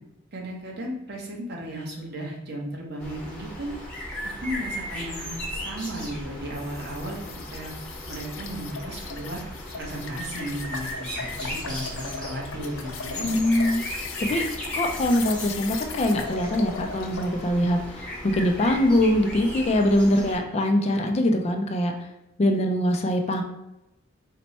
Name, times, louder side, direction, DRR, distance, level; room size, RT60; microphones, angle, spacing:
voice 1, 0.3-3.7 4.2-7.2 7.5-7.7 8.1-9.4 9.8-10.9 11.1-13.3, equal, 55° right, -1 dB, 0.9 m, -35 dB
sound 1, 3.0-20.4, equal, 5° left, 0.7 m, -36 dB
sound 2, 6.5-17.3, left 5 dB, 80° left, 0.5 m, -38 dB
voice 2, 13.2-13.8 14.2-14.5 14.7-22.1 22.4-23.4, left 1 dB, 35° left, 4 dB, 0.4 m, -23 dB
4.2 x 2.1 x 4.1 m, 0.92 s
head